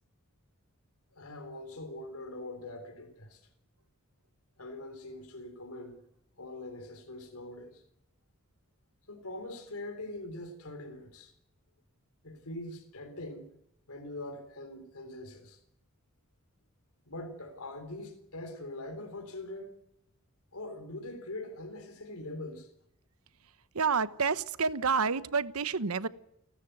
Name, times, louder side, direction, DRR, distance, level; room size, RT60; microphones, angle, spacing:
voice 1, 1.1-3.4 4.6-6.0 6.4-7.8 9.1-11.3 12.2-13.5 13.9-15.6 17.1-19.8 20.5-22.7, left 2 dB, 85° left, 3.7 m, -43 dB
voice 2, 23.7-26.1, right 5 dB, 85° right, 1.0 m, -29 dB
29.5 x 13.5 x 7.9 m
head